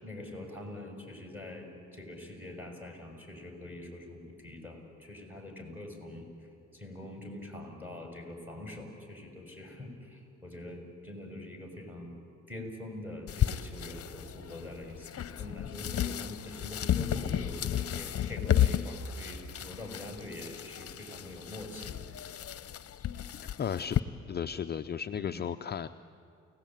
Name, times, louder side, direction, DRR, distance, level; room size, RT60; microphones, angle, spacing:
voice 1, 0.0-6.3 6.7-12.2 12.5-22.3 25.2-25.4, left 1 dB, 5° right, 2 dB, 6.3 m, -44 dB
sound 1, 13.3-24.0, left 10 dB, 50° left, 0.9 m, -33 dB
voice 2, 23.4-24.0 24.3-25.9, left 8 dB, 35° left, 9 dB, 0.6 m, -34 dB
29.5 x 18.0 x 8.9 m, 2.6 s
cardioid pair, 90°, 30 cm